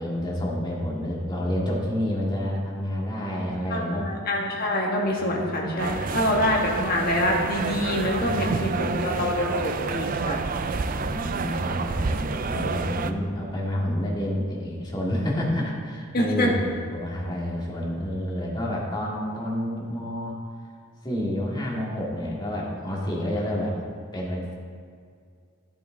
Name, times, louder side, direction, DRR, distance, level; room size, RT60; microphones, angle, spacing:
voice 1, 0.0-4.0 5.2-6.3 8.2-9.1 10.8-20.4 21.0-23.8 24.1-24.5, equal, 20° left, -4 dB, 2.0 m, -29 dB
voice 2, 3.7-10.4 16.1-16.5, left 1 dB, 45° left, -2 dB, 1.7 m, -25 dB
sound 1, 5.8-13.1, right 4 dB, 40° right, 0.4 m, -29 dB
13.0 x 8.3 x 3.8 m, 2.2 s
head